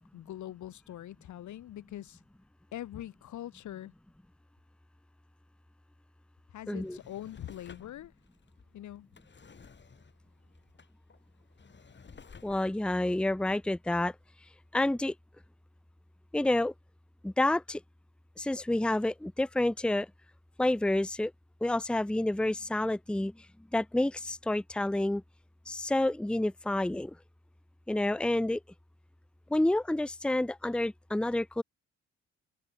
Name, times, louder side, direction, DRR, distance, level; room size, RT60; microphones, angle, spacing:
voice 1, 0.0-2.2 2.7-3.9 6.5-8.1 8.7-9.1, left 12 dB, 70° left, 1.8 m, -43 dB
voice 2, 6.7-7.0 12.4-14.1 14.7-15.1 16.3-16.7 17.2-17.8 18.4-20.1 20.6-21.3 21.6-23.3 23.7-25.2 25.7-27.1 27.9-28.6 29.5-31.6, left 1 dB, 5° left, 0.9 m, -29 dB
Drawer open or close, 6.8-14.3 14.7-14.8, left 5 dB, 35° left, 7.0 m, -56 dB
cardioid pair, 90°, 30 cm